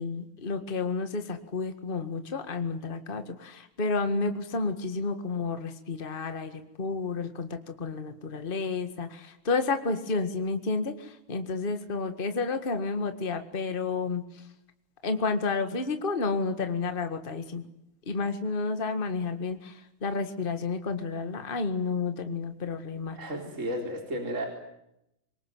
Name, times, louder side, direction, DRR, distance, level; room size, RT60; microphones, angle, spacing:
voice 1, 0.0-14.5 15.0-17.6 18.1-23.4, left 4 dB, 25° left, 8 dB, 1.9 m, -31 dB
voice 2, 23.1-24.5, equal, 35° right, 2 dB, 4.4 m, -33 dB
25.5 x 22.5 x 9.5 m, 0.82 s
omnidirectional pair, 2.2 m